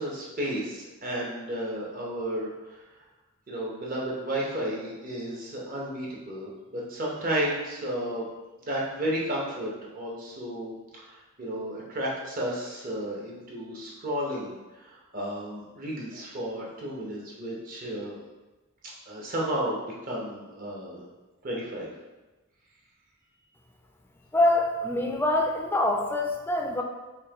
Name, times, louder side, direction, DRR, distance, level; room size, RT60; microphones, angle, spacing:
voice 1, 0.0-2.5 3.5-8.3 8.6-11.1 11.4-18.2 19.1-21.1 21.4-21.9, right 1 dB, 45° right, -4 dB, 0.9 m, -33 dB
voice 2, 24.3-26.8, left 1 dB, 10° left, 1 dB, 0.4 m, -25 dB
5.4 x 2.2 x 2.9 m, 1.1 s
head